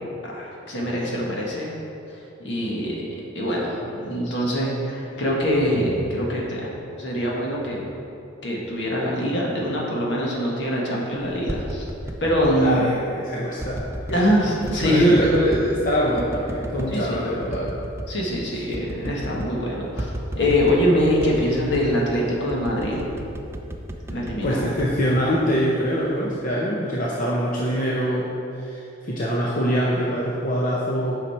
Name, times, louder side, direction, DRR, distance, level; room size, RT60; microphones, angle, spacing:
voice 1, 0.2-1.7 2.4-3.0 3.3-6.7 7.0-7.9 8.4-11.8 12.2-12.8 14.1-15.2 16.9-17.3 18.1-23.0 24.1-24.6, equal, 65° left, -3 dB, 1.6 m, -24 dB
sound 1, 11.2-12.6 13.6-14.2 14.7-15.7 16.2-16.9 17.4-18.1 18.4-18.5 18.7-19.6 20.0-20.9 21.2-21.9 22.5-25.6 26.0-26.4, right 1 dB, 15° right, 0.5 m, -33 dB
voice 2, 12.6-13.8 14.8-17.7 24.4-28.3 28.6-31.2, equal, 45° left, -5 dB, 0.8 m, -23 dB
8.8 x 5.7 x 4.3 m, 2.8 s
head